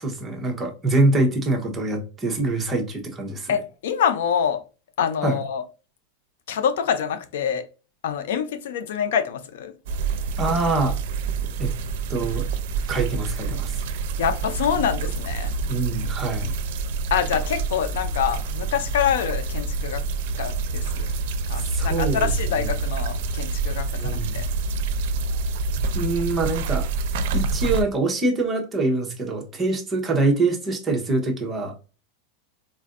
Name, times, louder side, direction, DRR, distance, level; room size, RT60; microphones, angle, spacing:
voice 1, 0.0-3.5 5.2-5.4 10.4-11.0 11.6-11.7 12.1-12.5 12.9-13.8 15.7-16.5 21.5-22.3 22.6-22.7 24.0-24.4 25.9-26.9 27.3-32.0, right 2 dB, 15° right, 0.8 m, -24 dB
voice 2, 3.5-4.6 5.0-5.6 6.5-7.7 8.0-9.7 14.2-15.5 17.1-20.0 20.4-21.1 21.5-24.5, left 8 dB, 80° left, 0.5 m, -26 dB
sound 1, 9.9-27.8, right 4 dB, 65° right, 0.5 m, -27 dB
4.3 x 2.5 x 2.4 m
supercardioid pair, 160°, 0 cm